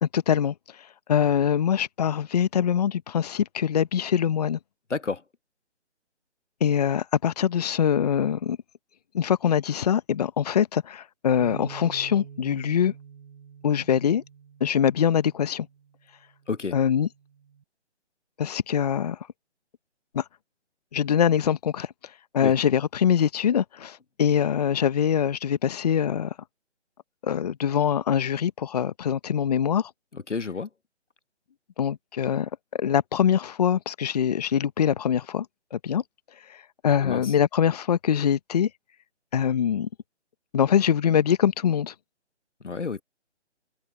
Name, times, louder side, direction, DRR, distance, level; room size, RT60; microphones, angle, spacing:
voice 1, 0.0-0.5 1.1-4.6 6.6-8.6 9.1-12.9 13.6-14.2 14.6-15.7 16.7-17.1 18.4-19.2 20.1-20.2 20.9-21.9 22.3-26.3 27.2-29.9 31.8-35.5 35.7-36.0 36.5-36.6 36.8-38.7 39.3-39.9 40.5-41.9, left 8 dB, 35° left, 1.0 m, -23 dB
voice 2, 4.9-5.2 16.5-16.8 22.4-22.5 30.1-30.7 37.0-37.3 42.6-43.0, left 4 dB, 85° left, 1.5 m, -30 dB
Bass guitar, 11.4-17.6, right 7 dB, 50° right, 1.7 m, -46 dB
open air
figure-of-eight pair, 150°, 35 cm